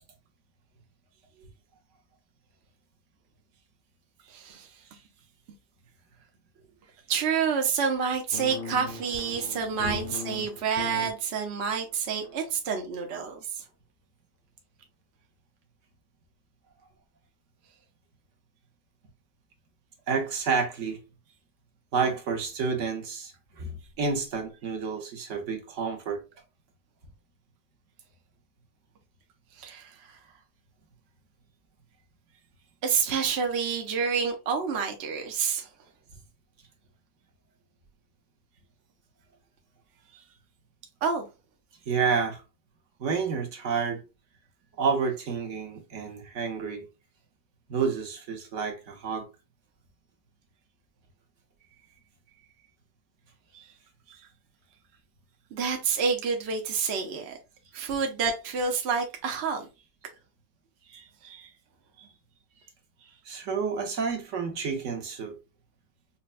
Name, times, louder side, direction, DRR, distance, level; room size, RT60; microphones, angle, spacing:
voice 1, 4.3-4.7 7.1-13.6 29.6-30.2 32.8-35.7 41.0-41.2 53.5-53.7 54.1-54.2 55.5-57.4 57.7-59.7 60.9-61.5 62.0-62.1, right 6 dB, 70° right, 0.6 m, -29 dB
sound 1, 8.3-11.1 11.6-11.9 12.2-12.4, left 4 dB, 65° left, 0.8 m, -39 dB
voice 2, 20.1-21.0 21.9-26.2 41.9-42.4 43.0-44.0 44.8-46.8 47.7-49.3 63.3-65.4, right 5 dB, 55° right, 0.9 m, -29 dB
5.4 x 2.2 x 2.4 m
omnidirectional pair, 2.0 m